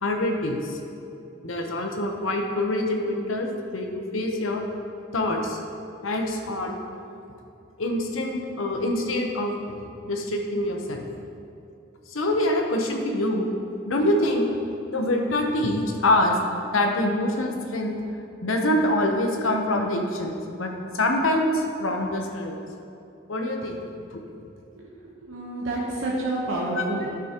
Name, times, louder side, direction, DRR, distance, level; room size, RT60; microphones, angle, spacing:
voice 1, 0.0-0.8 1.4-4.6 5.1-5.6 6.0-6.8 7.8-9.6 10.0-11.0 12.1-13.5 13.8-14.5 14.9-16.4 16.7-18.0 18.4-20.3 20.6-22.6 23.3-23.8 24.1-24.2 26.7-26.8, left 1 dB, 90° left, 2 dB, 0.9 m, -25 dB
voice 2, 25.2-27.1, right 2 dB, 80° right, -5 dB, 1.1 m, -29 dB
11.0 x 6.1 x 3.0 m, 2.8 s
head